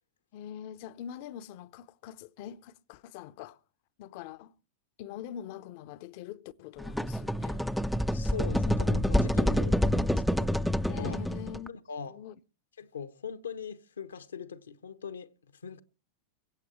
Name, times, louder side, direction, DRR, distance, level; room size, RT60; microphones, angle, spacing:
voice 1, 0.3-3.6 4.0-4.5 5.0-7.6 10.9-11.7 12.1-12.4, left 10 dB, 45° left, 0.8 m, -44 dB
sound 1, 6.8-11.7, equal, ahead, 0.6 m, -27 dB
voice 2, 8.1-10.6 10.9-11.2 11.7-12.1 12.8-15.3 15.6-15.8, left 6 dB, 70° left, 1.1 m, -40 dB
23.5 x 8.4 x 4.4 m
figure-of-eight pair, 90°, 0 cm